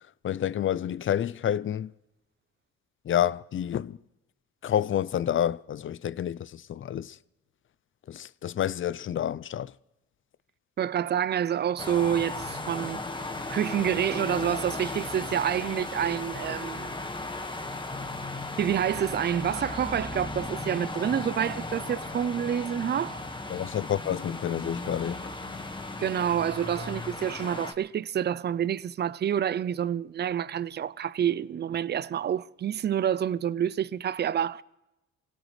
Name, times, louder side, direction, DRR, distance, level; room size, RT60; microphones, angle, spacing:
voice 1, 0.2-1.9 3.1-4.0 4.6-7.2 8.1-9.7 23.5-25.2, left 10 dB, 45° left, 0.5 m, -29 dB
voice 2, 10.8-13.0 13.5-17.0 18.6-23.2 26.0-34.6, right 9 dB, 35° right, 0.5 m, -28 dB
sound 1, 11.8-27.7, left 2 dB, 15° left, 1.5 m, -36 dB
26.0 x 17.5 x 3.2 m
cardioid pair, 90°, 30 cm